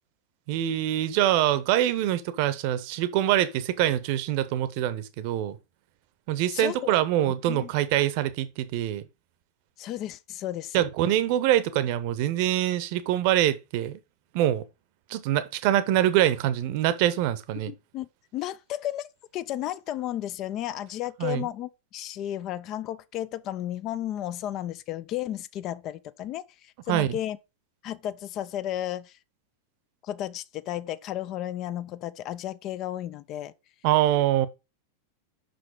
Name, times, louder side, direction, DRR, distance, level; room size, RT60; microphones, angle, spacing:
voice 1, 0.5-5.6 6.3-9.0 10.7-14.0 14.3-14.6 15.1-17.7 21.2-21.5 26.9-27.2 33.8-34.5, right 12 dB, 45° right, 0.8 m, -24 dB
voice 2, 9.8-10.8 17.7-18.1 18.3-19.1 19.3-27.4 27.8-29.2 30.0-33.5, left 12 dB, 35° left, 0.4 m, -33 dB
5.7 x 5.2 x 5.0 m
figure-of-eight pair, 90°, 0 cm